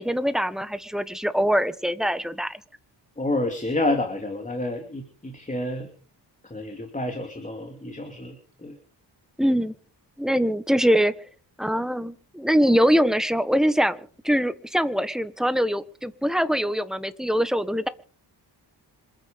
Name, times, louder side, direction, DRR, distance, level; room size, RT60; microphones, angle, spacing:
voice 1, 0.0-2.6 9.4-9.7 10.2-11.1 11.6-17.9, equal, ahead, 12 dB, 1.4 m, -23 dB
voice 2, 3.2-5.9 6.5-8.4 8.6-8.8, left 2 dB, 20° left, 4 dB, 2.9 m, -29 dB
26.5 x 9.7 x 5.3 m, 0.41 s
wide cardioid pair, 105°, 41 cm